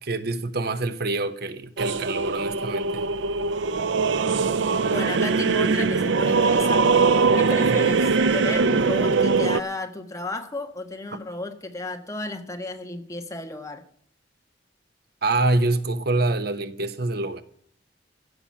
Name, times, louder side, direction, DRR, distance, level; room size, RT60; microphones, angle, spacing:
voice 1, 0.0-3.0 7.4-7.8 11.1-11.2 15.2-17.4, right 2 dB, 60° right, 1.0 m, -26 dB
sound 1, 1.8-9.6, right 4 dB, 85° right, 0.5 m, -21 dB
voice 2, 4.9-8.1 8.3-13.8, left 2 dB, 20° left, 1.4 m, -33 dB
16.0 x 6.2 x 8.4 m
head